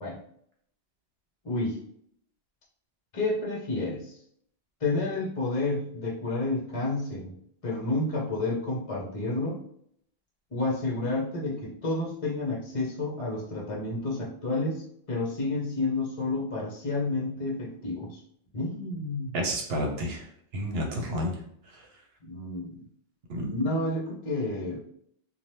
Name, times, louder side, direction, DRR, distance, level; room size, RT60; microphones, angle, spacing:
voice 1, 1.4-1.8 3.1-4.2 4.8-7.4 7.6-9.6 10.5-18.2 18.5-19.4 22.2-22.8 23.5-24.8, left 2 dB, 40° left, -4 dB, 0.7 m, -30 dB
voice 2, 19.3-20.3 20.5-21.4 21.7-21.9 23.3-23.5, equal, 70° right, 1 dB, 0.9 m, -30 dB
2.8 x 2.2 x 3.2 m, 0.67 s
omnidirectional pair, 1.1 m